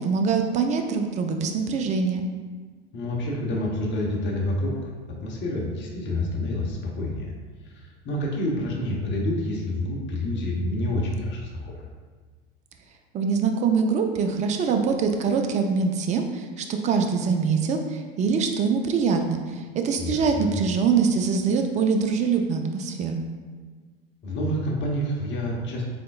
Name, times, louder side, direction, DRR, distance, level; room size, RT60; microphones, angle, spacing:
voice 1, 0.0-2.3 13.1-23.2, right 5 dB, 25° right, 5 dB, 0.4 m, -24 dB
voice 2, 2.9-4.7 5.1-7.3 7.6-11.9 20.0-20.5 24.2-25.9, left 1 dB, 40° left, -2 dB, 1.0 m, -28 dB
3.7 x 3.4 x 2.3 m, 1.5 s
hypercardioid pair, 85°, 30 cm